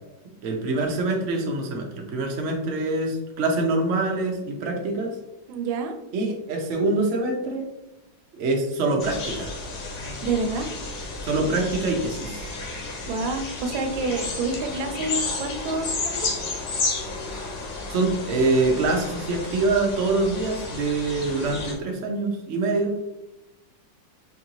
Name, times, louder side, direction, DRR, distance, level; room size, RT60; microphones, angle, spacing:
voice 1, 0.4-5.2 6.1-7.7 8.3-9.5 11.2-12.5 17.9-23.0, right 2 dB, 60° right, 1 dB, 0.7 m, -25 dB
voice 2, 5.5-6.0 10.2-10.7 13.0-16.3, right 3 dB, 85° right, 4 dB, 1.4 m, -28 dB
sound 1, 9.0-21.7, left 3 dB, 70° left, 1.5 m, -32 dB
4.5 x 2.6 x 2.9 m, 0.93 s
omnidirectional pair, 2.0 m